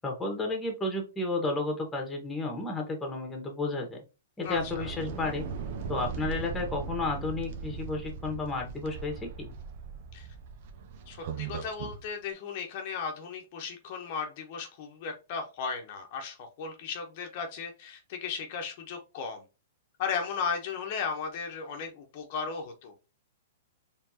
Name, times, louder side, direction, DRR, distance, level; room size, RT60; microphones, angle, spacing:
voice 1, 0.0-4.0 4.4-5.5 5.9-9.5, left 2 dB, 10° left, 2 dB, 1.5 m, -32 dB
voice 2, 4.4-4.9 10.1-10.3 11.1-19.4 20.0-22.9, left 5 dB, 50° left, 3 dB, 1.0 m, -36 dB
sound 1, 4.4-12.0, right 6 dB, 55° right, 0.9 m, -39 dB
4.4 x 3.4 x 2.8 m, 0.31 s
hypercardioid pair, 125°, 0 cm